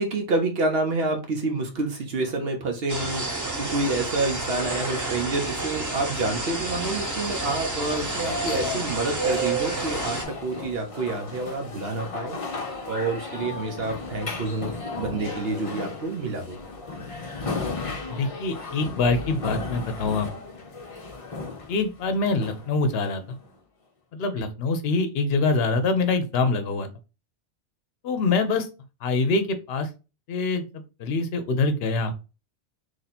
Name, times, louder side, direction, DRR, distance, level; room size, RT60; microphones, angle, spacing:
voice 1, 0.0-12.4 12.9-16.6, right 3 dB, 60° right, 4 dB, 1.0 m, -28 dB
sound 1, 2.9-10.2, right 2 dB, 20° right, 0.7 m, -29 dB
sound 2, 6.5-23.5, left 3 dB, 35° left, 0.7 m, -36 dB
voice 2, 18.1-20.3 21.7-23.2 24.1-26.9 28.0-28.7 29.0-29.9 30.3-30.6 31.0-32.1, left 3 dB, 60° left, 8 dB, 0.9 m, -24 dB
3.1 x 2.8 x 4.1 m, 0.30 s
omnidirectional pair, 1.2 m